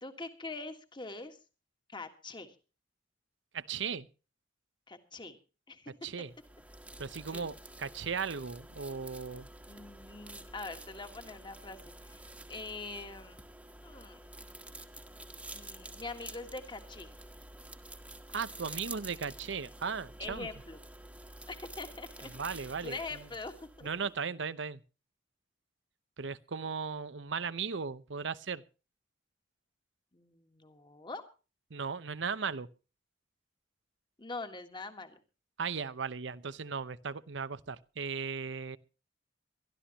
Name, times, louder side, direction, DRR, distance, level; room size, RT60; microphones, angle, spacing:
voice 1, 0.0-1.4 1.9-2.5 4.9-5.4 5.7-5.9 7.3-7.5 9.7-12.2 12.5-13.4 13.8-14.2 15.5-17.1 20.2-20.8 21.5-22.3 22.8-23.9 30.1-31.2 34.2-35.2, left 3 dB, 25° left, 1.6 m, -43 dB
voice 2, 3.5-4.1 6.0-6.3 7.0-9.5 18.3-20.5 22.2-23.3 23.8-24.8 26.2-28.6 31.7-32.7 35.6-38.8, right 5 dB, 70° right, 0.8 m, -37 dB
sound 1, 6.3-24.1, right 1 dB, 5° right, 1.3 m, -49 dB
23.0 x 13.0 x 2.9 m
head